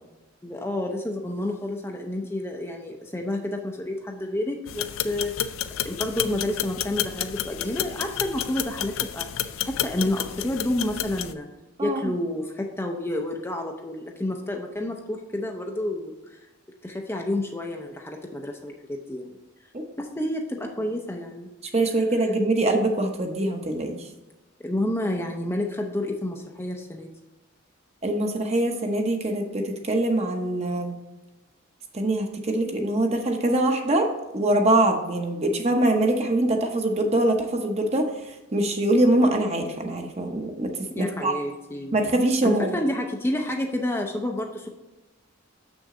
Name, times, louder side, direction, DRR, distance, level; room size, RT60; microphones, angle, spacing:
voice 1, 0.4-5.5 5.8-9.3 9.6-11.5 11.8-16.5 16.8-19.4 20.0-21.5 24.6-27.1 40.9-42.0 42.4-44.7, left 1 dB, 10° left, 2 dB, 0.5 m, -29 dB
sound 1, 4.7-11.3, left 11 dB, 75° left, 0.4 m, -31 dB
voice 2, 11.8-12.1 19.7-19.8 21.7-24.0 28.0-31.0 31.9-34.1 34.3-38.1 38.5-40.7 40.9-41.3 41.9-42.8, right 1 dB, 30° right, 3 dB, 0.9 m, -23 dB
7.0 x 6.2 x 3.7 m, 1.1 s
head